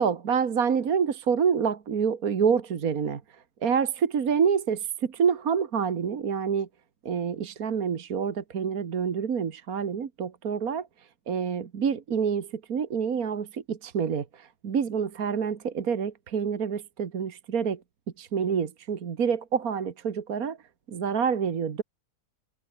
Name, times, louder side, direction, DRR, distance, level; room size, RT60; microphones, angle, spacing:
voice 1, 0.0-6.7 7.0-17.8 18.2-20.6 20.9-21.8, right 6 dB, 65° right, 1.9 m, -27 dB
omnidirectional pair, 1.6 m